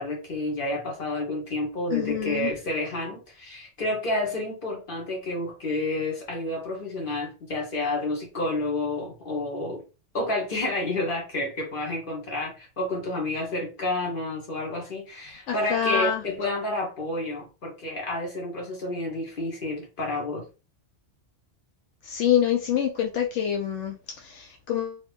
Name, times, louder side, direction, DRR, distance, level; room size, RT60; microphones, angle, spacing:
voice 1, 0.0-9.8 10.1-20.4, left 2 dB, 50° left, 1.5 m, -30 dB
voice 2, 1.9-2.5 15.5-16.2 22.0-25.0, left 9 dB, 80° left, 0.9 m, -26 dB
2.9 x 2.8 x 3.3 m
omnidirectional pair, 1.2 m